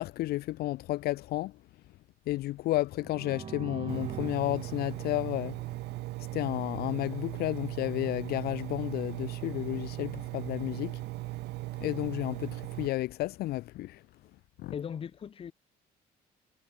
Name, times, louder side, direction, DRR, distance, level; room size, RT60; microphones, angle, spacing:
voice 1, 0.0-1.5 2.3-5.6 6.3-11.0 11.8-14.0 14.6-14.7, left 17 dB, 70° left, 0.5 m, -32 dB
sound 1, 2.9-6.7, right 7 dB, 35° right, 1.0 m, -44 dB
Engine, 3.9-12.9, right 19 dB, 85° right, 1.0 m, -38 dB
voice 2, 14.7-15.5, left 8 dB, 35° left, 0.7 m, -38 dB
cardioid pair, 110°, 17 cm